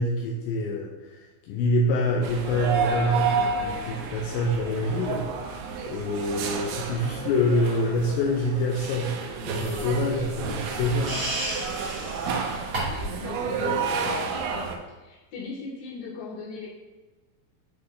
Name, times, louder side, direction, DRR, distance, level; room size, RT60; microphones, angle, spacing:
voice 1, 0.0-5.3 5.9-11.1 11.5-11.8 13.3-14.2, left 1 dB, 85° left, -1 dB, 1.9 m, -26 dB
sound 1, 2.2-14.8, right 5 dB, 80° right, 2.1 m, -30 dB
sound 2, 9.4-13.2, right 1 dB, 65° right, 0.5 m, -34 dB
voice 2, 13.0-13.7 14.0-14.7 15.0-16.7, left 4 dB, 55° left, -6 dB, 2.2 m, -39 dB
7.9 x 3.3 x 3.7 m, 1.2 s
omnidirectional pair, 4.3 m